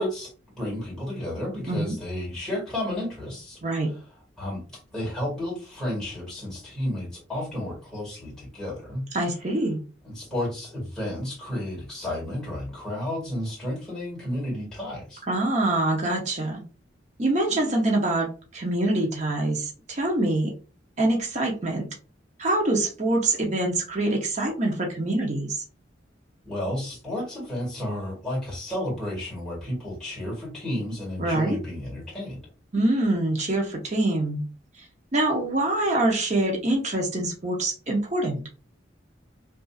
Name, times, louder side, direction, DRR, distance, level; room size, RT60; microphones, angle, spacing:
voice 1, 0.0-3.6 4.4-4.6 4.9-9.0 10.0-15.2 26.4-32.4, left 1 dB, 5° left, -5 dB, 2.2 m, -32 dB
voice 2, 9.1-9.8 15.3-16.6 17.2-20.5 21.0-21.9 22.4-25.6 31.2-31.6 32.7-34.4 34.8-34.9 35.1-38.4, right 2 dB, 40° right, 0 dB, 0.8 m, -25 dB
5.2 x 2.7 x 2.4 m, 0.36 s
head